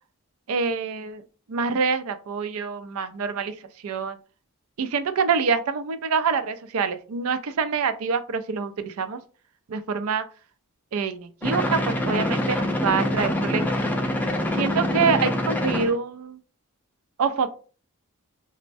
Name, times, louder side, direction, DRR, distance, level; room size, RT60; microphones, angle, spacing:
voice 1, 0.5-1.2 1.5-3.5 3.8-4.2 4.8-9.2 9.7-10.2 10.9-13.7 14.5-16.4 17.2-17.5, right 5 dB, 80° right, 11 dB, 0.4 m, -26 dB
sound 1, 11.4-16.0, left 1 dB, 5° left, 0.3 m, -25 dB
4.3 x 2.1 x 2.5 m, 0.38 s
head